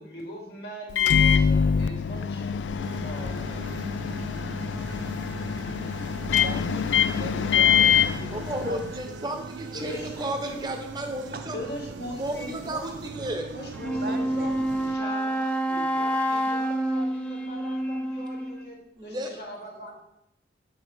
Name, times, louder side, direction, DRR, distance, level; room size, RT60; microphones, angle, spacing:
voice 1, 0.0-3.6 9.7-10.7 11.5-12.8 13.5-18.8 19.0-20.0, equal, 70° left, -3 dB, 2.2 m, -40 dB
Microwave oven, 0.9-9.1, left 8 dB, 85° left, 0.3 m, -24 dB
sound 1, 2.8-15.0, right 4 dB, 90° right, 0.4 m, -40 dB
voice 2, 6.3-8.8 11.3-11.5 13.8-14.5, right 2 dB, 55° right, 6 dB, 0.8 m, -39 dB
voice 3, 8.3-11.6 12.1-13.5 19.0-19.3, right 1 dB, 25° right, 4 dB, 0.9 m, -33 dB
Wind instrument woodwind instrument, 13.7-18.7, right 1 dB, 5° left, 0.5 m, -28 dB
7.8 x 6.4 x 3.5 m, 0.79 s
head